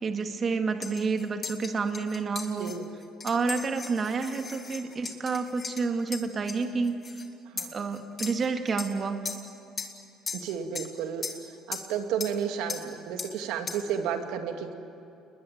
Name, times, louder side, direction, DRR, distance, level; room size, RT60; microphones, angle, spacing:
voice 1, 0.0-2.7 3.2-7.2 7.7-9.3, right 4 dB, 35° right, 5 dB, 2.0 m, -29 dB
sound 1, 0.8-7.2 7.6-8.9 9.2-9.5 9.8-10.0 10.3-10.9 11.2-11.4 11.7-11.9 12.2-12.4 12.7-12.9 13.2-13.4 13.7-13.9, left 5 dB, 30° left, 2.8 m, -38 dB
voice 2, 10.3-11.2 11.7-14.8, right 8 dB, 75° right, 5 dB, 2.6 m, -32 dB
29.5 x 21.0 x 9.4 m, 2.7 s
cardioid pair, 120°, 0 cm